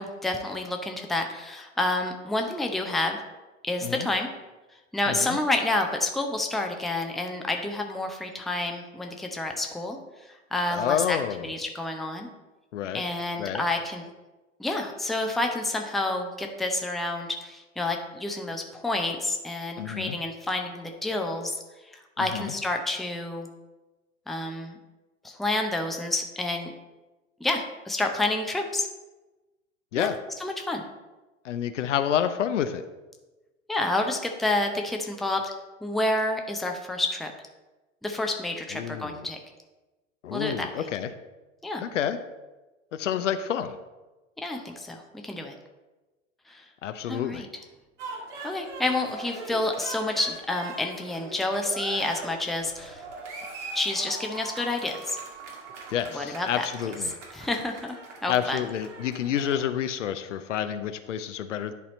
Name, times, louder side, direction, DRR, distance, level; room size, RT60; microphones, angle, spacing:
voice 1, 0.0-3.2 3.6-4.3 4.9-10.0 10.3-12.3 12.9-14.0 14.6-21.6 21.9-23.5 24.3-24.8 25.2-26.7 27.4-28.9 29.9-30.1 30.4-30.8 33.7-35.5 35.8-37.3 38.0-39.4 40.3-40.9 41.6-41.8 44.4-45.5 46.5-46.7 47.1-47.5 48.4-53.0 53.7-55.2 56.1-56.6 57.3-58.0 58.2-58.6, left 2 dB, ahead, 3 dB, 0.6 m, -29 dB
voice 2, 5.1-5.4 10.7-11.5 12.7-13.0 13.4-13.6 19.8-20.2 22.2-22.5 29.9-30.2 31.4-32.9 38.7-39.3 40.2-41.1 41.8-42.2 42.9-43.8 46.8-47.5 55.9-57.1 58.3-61.7, left 9 dB, 65° left, 10 dB, 0.6 m, -29 dB
sound 1, 48.0-59.7, right 3 dB, 60° right, 1.7 m, -41 dB
10.5 x 4.2 x 4.1 m, 1.1 s
figure-of-eight pair, 85°, 39 cm